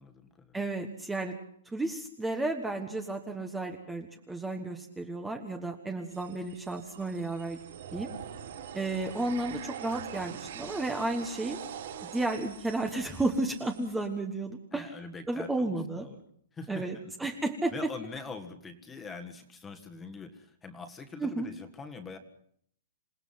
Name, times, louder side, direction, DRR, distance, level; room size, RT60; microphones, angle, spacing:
voice 1, 0.0-0.6 9.4-9.5 14.7-16.2 16.5-17.1 17.7-22.2, left 4 dB, 10° left, 7 dB, 1.7 m, -43 dB
voice 2, 0.5-1.3 1.6-7.6 7.9-8.1 8.7-11.6 12.0-15.0 15.3-16.1 16.7-17.9 21.2-21.5, right 2 dB, 5° right, 4 dB, 1.3 m, -33 dB
sound 1, 6.1-14.1, right 9 dB, 60° right, 5.3 m, -44 dB
27.5 x 18.5 x 5.8 m, 0.67 s
hypercardioid pair, 160°, 0 cm